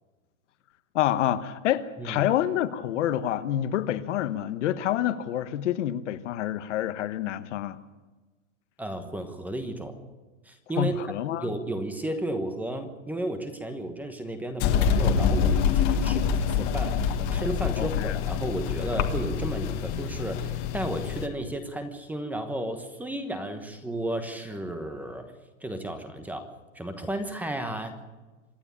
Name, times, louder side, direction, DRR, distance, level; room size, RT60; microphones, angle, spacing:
voice 1, 0.9-7.8 10.8-11.5 16.0-16.3 17.8-18.2, left 11 dB, 65° left, 12 dB, 1.3 m, -28 dB
voice 2, 8.8-10.0 10.4-11.0 11.4-25.3 25.6-26.5 26.7-27.9, right 1 dB, 5° right, 8 dB, 1.2 m, -33 dB
sound 1, 14.6-21.3, left 7 dB, 30° left, 1.6 m, -26 dB
26.0 x 10.0 x 9.8 m, 1.2 s
supercardioid pair, 165°, 38 cm